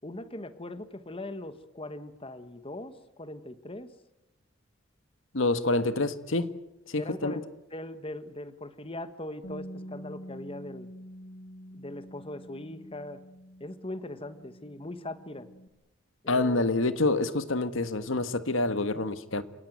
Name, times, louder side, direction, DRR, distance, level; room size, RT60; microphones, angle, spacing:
voice 1, 0.0-3.9 7.0-10.9 11.7-13.2 13.6-15.5 16.2-16.6, left 1 dB, 30° left, 12 dB, 1.4 m, -40 dB
voice 2, 5.3-6.6 6.9-7.4 16.3-19.4, left 2 dB, 85° left, 12 dB, 1.5 m, -27 dB
Bass guitar, 9.4-15.7, equal, 60° left, 2.9 m, -47 dB
28.5 x 18.5 x 9.4 m, 0.92 s
head